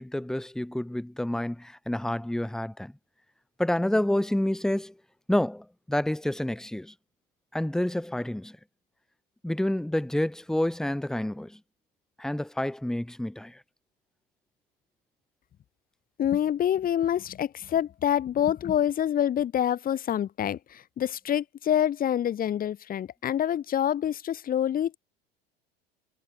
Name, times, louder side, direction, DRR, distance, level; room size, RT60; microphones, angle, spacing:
voice 1, 0.0-2.9 3.6-4.9 5.3-6.9 7.5-8.6 9.4-11.6 12.2-13.6, left 1 dB, ahead, 0.7 m, -28 dB
voice 2, 16.2-25.0, left 10 dB, 30° left, 0.8 m, -26 dB
hypercardioid pair, 80°, 30 cm